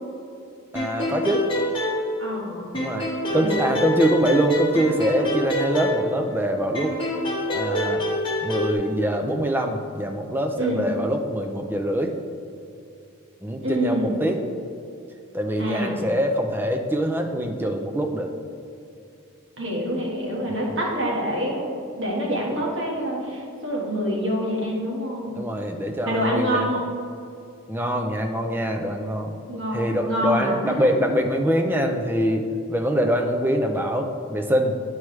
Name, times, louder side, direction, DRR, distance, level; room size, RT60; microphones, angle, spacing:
sound 1, 0.7-2.4 2.7-6.4 6.7-8.7, equal, 25° left, 1.2 m, -26 dB
voice 1, 0.7-1.5 2.7-7.0 7.5-8.0 8.4-12.1 13.4-14.4 15.3-18.3 20.5-20.8 25.3-26.8 27.7-29.3 29.7-32.4 32.7-34.7, equal, 10° right, 3 dB, 0.4 m, -24 dB
voice 2, 2.2-2.7 3.3-3.5 10.6-10.9 13.6-14.2 15.6-16.1 19.6-25.4 26.0-26.9 29.5-30.7, equal, 55° right, -3 dB, 1.4 m, -26 dB
10.5 x 4.7 x 3.2 m, 2.6 s
head